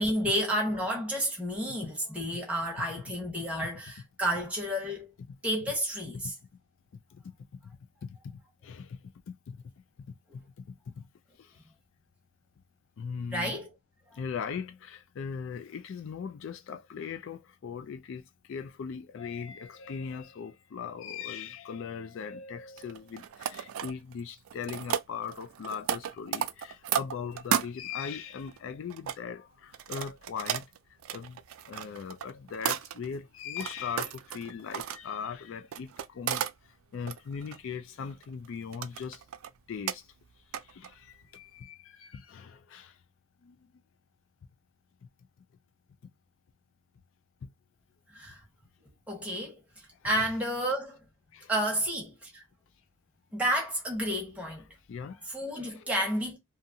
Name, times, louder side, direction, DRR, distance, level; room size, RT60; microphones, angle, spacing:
voice 1, 0.0-5.1 5.4-6.3 13.3-13.7 48.1-48.4 49.1-49.6 50.0-51.0 51.5-52.4 53.3-54.6 55.3-56.4, equal, 5° right, 1.0 m, -31 dB
voice 2, 8.0-8.3 8.6-9.0 9.3-9.4 10.3-10.4 10.7-11.1 11.4-11.6 13.0-13.6 14.1-18.2 18.5-30.6 31.1-31.4 31.7-36.5 36.9-39.2 39.7-40.1 40.6-43.0 43.4-43.6 50.2-50.3 51.3-51.5 54.9-55.3 55.5-55.9, left 6 dB, 60° left, 0.3 m, -39 dB
sound 1, 22.8-24.2 24.5-27.7 28.4-29.2 29.7-33.2 33.6-35.0 35.7-36.5 36.9-37.6 38.1-38.5 38.7-39.5 39.9-40.0 40.5-41.0 41.3-41.4, right 9 dB, 75° right, 0.3 m, -34 dB
2.7 x 2.4 x 2.6 m
head